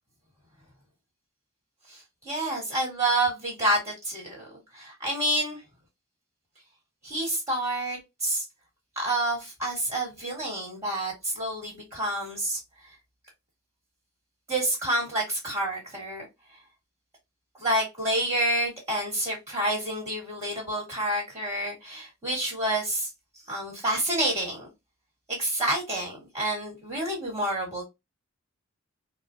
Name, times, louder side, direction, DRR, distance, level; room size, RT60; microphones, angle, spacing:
voice 1, 1.9-5.6 7.0-8.4 9.0-12.6 14.5-16.3 17.6-23.1 23.5-24.7 25.3-27.9, right 1 dB, 15° right, 1.7 m, -28 dB
4.2 x 2.0 x 2.6 m
head